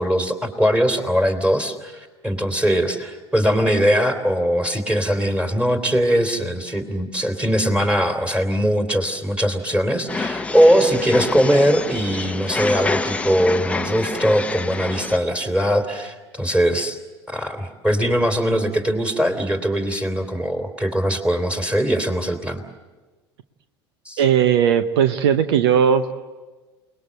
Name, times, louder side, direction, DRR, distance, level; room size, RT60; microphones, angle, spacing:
voice 1, 0.0-17.0 17.3-22.6 24.0-24.2, equal, 10° right, 5 dB, 3.4 m, -21 dB
sound 1, 10.1-15.2, left 3 dB, 10° left, 1.0 m, -27 dB
voice 2, 24.2-26.1, right 8 dB, 65° right, 11 dB, 0.9 m, -17 dB
29.0 x 20.5 x 7.9 m, 1.3 s
figure-of-eight pair, 75°, 14 cm